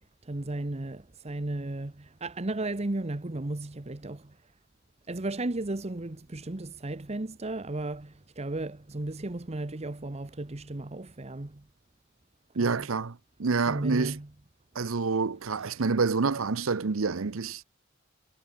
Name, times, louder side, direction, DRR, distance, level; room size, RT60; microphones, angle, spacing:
voice 1, 0.2-4.4 5.1-11.6 12.6-12.9 13.7-14.3, right 2 dB, 30° right, 1.0 m, -34 dB
voice 2, 12.6-14.2 14.7-17.6, right 4 dB, 80° right, 0.8 m, -28 dB
head